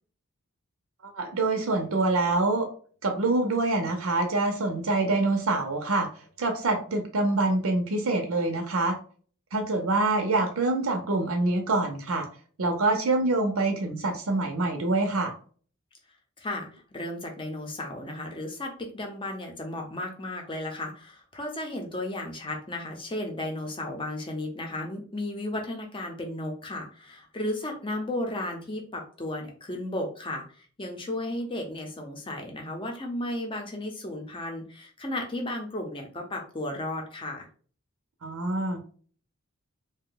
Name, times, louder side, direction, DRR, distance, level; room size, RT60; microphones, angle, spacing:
voice 1, 1.1-2.7 3.0-6.1 6.4-9.0 9.5-12.3 12.6-15.3 38.2-38.8, right 2 dB, 90° right, 4 dB, 0.6 m, -25 dB
voice 2, 16.4-37.5, left 1 dB, 25° left, 2 dB, 0.7 m, -34 dB
2.7 x 2.2 x 3.8 m, 0.43 s
head